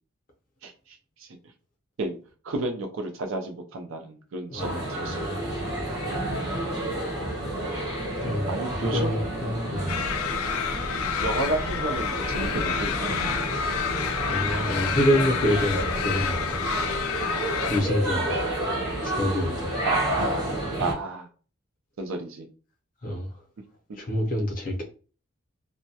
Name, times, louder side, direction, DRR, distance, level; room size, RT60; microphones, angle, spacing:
voice 1, 0.6-1.3 2.0-2.2 2.4-5.2 8.5-9.1 9.4-9.6 11.2-13.2 19.8-20.0 20.8-21.3 22.0-22.5, right 2 dB, 70° right, 0.4 m, -32 dB
voice 2, 4.5-6.0 8.1-9.9 14.3-16.7 17.7-18.3 19.0-19.8 23.0-23.3 24.0-24.8, equal, 40° left, 0.6 m, -27 dB
sound 1, 4.6-20.9, right 1 dB, 20° right, 0.6 m, -30 dB
sound 2, 9.9-17.8, left 7 dB, 85° left, 0.3 m, -29 dB
2.2 x 2.1 x 2.7 m
head